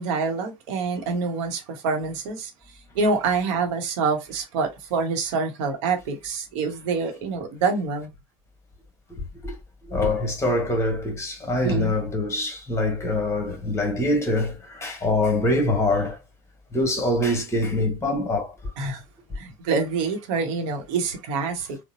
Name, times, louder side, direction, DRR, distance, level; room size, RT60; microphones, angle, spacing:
voice 1, 0.0-2.5 2.9-8.1 11.6-11.9 18.8-19.0 19.4-21.8, right 4 dB, 60° right, 1.0 m, -26 dB
voice 2, 9.9-16.2 16.7-18.5, left 1 dB, 15° left, 1.5 m, -24 dB
3.8 x 2.2 x 2.6 m
figure-of-eight pair, 65°, 17 cm